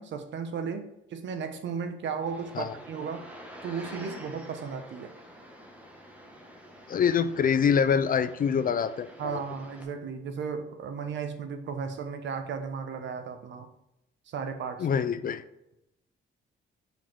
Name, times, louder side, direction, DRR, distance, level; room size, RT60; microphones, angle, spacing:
voice 1, 0.0-3.3 3.6-5.1 9.2-13.7 14.3-14.9, right 6 dB, 70° right, 8 dB, 1.0 m, -35 dB
sound 1, 2.2-9.8, equal, 5° right, 1.4 m, -48 dB
voice 2, 6.9-9.4 14.8-15.4, left 7 dB, 45° left, 13 dB, 0.5 m, -25 dB
5.7 x 5.2 x 4.3 m, 0.86 s
cardioid pair, 90°, 20 cm